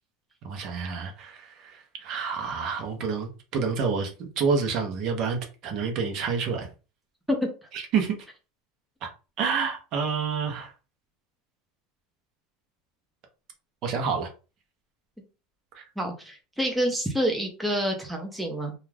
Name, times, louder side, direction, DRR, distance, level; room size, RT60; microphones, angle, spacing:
voice 1, 0.4-6.7 7.7-8.1 9.0-9.1 9.4-10.7 13.8-14.3 15.7-15.8, right 5 dB, 50° right, 4 dB, 0.7 m, -28 dB
voice 2, 16.0-18.7, equal, 5° right, 1 dB, 0.6 m, -27 dB
2.4 x 2.3 x 3.3 m, 0.33 s
supercardioid pair, 135°, 0 cm